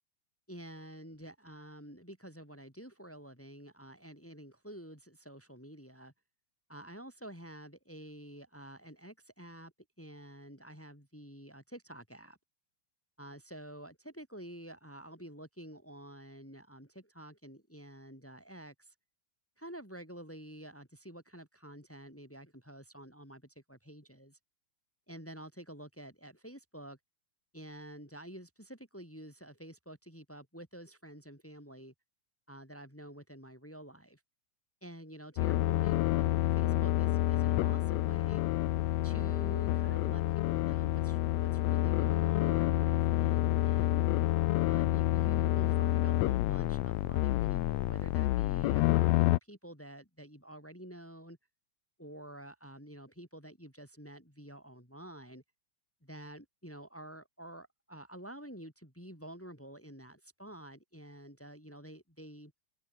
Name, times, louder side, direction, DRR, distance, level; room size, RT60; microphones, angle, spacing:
voice 1, 0.5-6.1 6.7-12.4 13.2-18.9 19.6-24.4 25.1-27.0 27.5-31.9 32.5-34.2 34.8-38.4 39.0-44.1 44.7-51.4 52.0-55.4 56.0-62.5, right 1 dB, 5° left, 7.4 m, -49 dB
sound 1, 35.4-49.4, left 17 dB, 80° left, 1.6 m, -28 dB
omnidirectional pair, 3.8 m